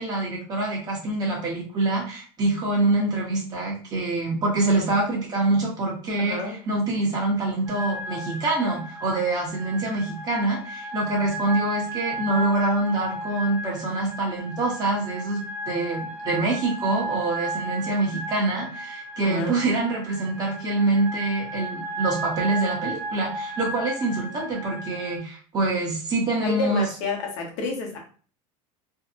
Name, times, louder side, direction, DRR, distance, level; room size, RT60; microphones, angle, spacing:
voice 1, 0.0-26.9, right 2 dB, 25° right, -3 dB, 1.0 m, -25 dB
voice 2, 6.2-6.6 19.2-19.6 26.4-28.0, left 2 dB, 75° left, 2 dB, 0.9 m, -29 dB
sound 1, 7.7-25.2, right 1 dB, 10° right, 0.5 m, -34 dB
2.7 x 2.1 x 2.5 m, 0.41 s
supercardioid pair, 155°, 15 cm